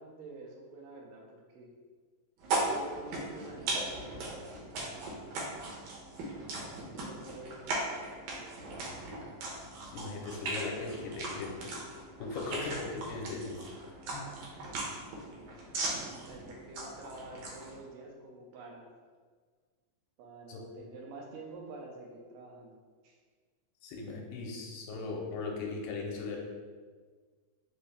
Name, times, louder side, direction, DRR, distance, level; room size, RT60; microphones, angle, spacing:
voice 1, 0.0-1.7 2.4-5.2 6.8-7.8 8.3-9.1 15.3-19.0 20.2-22.8 23.0-23.2, right 2 dB, 90° right, 0 dB, 2.3 m, -49 dB
sound 1, 2.4-17.8, right 2 dB, 70° right, 2.0 m, -38 dB
voice 2, 9.9-11.7 12.2-13.5 14.1-14.3 20.5-20.6 23.8-26.4, left 3 dB, 85° left, 0 dB, 2.3 m, -38 dB
5.5 x 2.6 x 3.3 m, 1.5 s
omnidirectional pair, 3.9 m